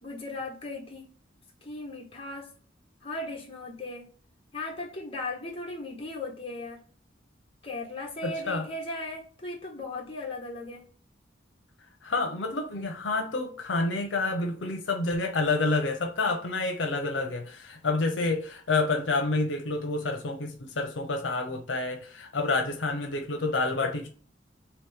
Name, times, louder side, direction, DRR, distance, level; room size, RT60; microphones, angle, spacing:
voice 1, 0.0-1.1 1.6-2.5 3.0-4.1 4.5-6.8 7.6-10.8, left 2 dB, 30° left, 1.2 m, -37 dB
voice 2, 8.2-8.7 12.0-24.1, left 3 dB, 85° left, 0.6 m, -28 dB
3.0 x 3.0 x 3.4 m
head